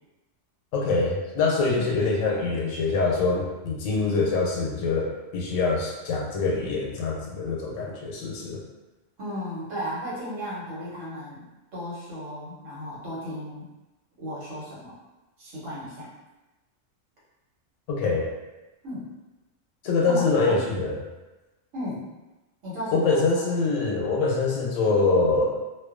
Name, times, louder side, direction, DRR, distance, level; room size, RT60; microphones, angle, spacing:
voice 1, 0.7-8.6 17.9-18.3 19.8-21.0 22.9-25.6, left 3 dB, 85° left, -1 dB, 1.0 m, -24 dB
voice 2, 9.2-13.7 14.2-15.0 15.4-16.1 18.8-19.1 20.0-20.6 21.7-22.1 22.6-23.5, equal, 80° right, -7 dB, 1.2 m, -35 dB
2.4 x 2.2 x 2.4 m, 1.1 s
omnidirectional pair, 1.3 m